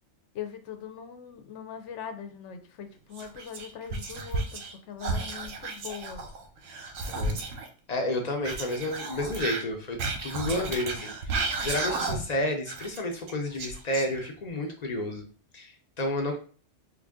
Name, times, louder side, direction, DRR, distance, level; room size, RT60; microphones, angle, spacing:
voice 1, 0.3-6.3, left 8 dB, 75° left, 7 dB, 0.9 m, -41 dB
Whispering, 3.1-4.7 5.0-7.7 8.4-12.4 12.7-14.5, right 3 dB, 90° right, 1.1 m, -33 dB
voice 2, 7.0-7.4 7.9-15.3 15.5-16.4, left 1 dB, 45° left, 3 dB, 0.6 m, -31 dB
3.2 x 2.5 x 3.5 m, 0.40 s
omnidirectional pair, 1.3 m